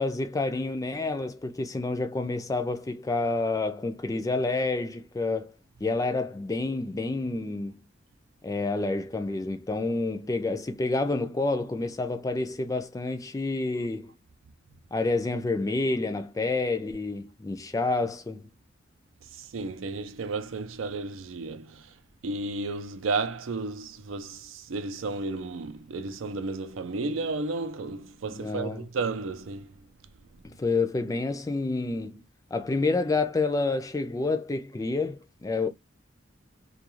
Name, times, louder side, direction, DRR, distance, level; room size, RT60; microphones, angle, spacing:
voice 1, 0.0-5.5 5.8-7.8 8.4-14.1 14.9-18.5 28.3-28.8 30.4-32.2 32.5-35.7, left 3 dB, 15° left, 0.4 m, -29 dB
voice 2, 19.2-22.0 22.2-29.9, right 3 dB, 90° right, 0.5 m, -33 dB
2.4 x 2.2 x 2.9 m
head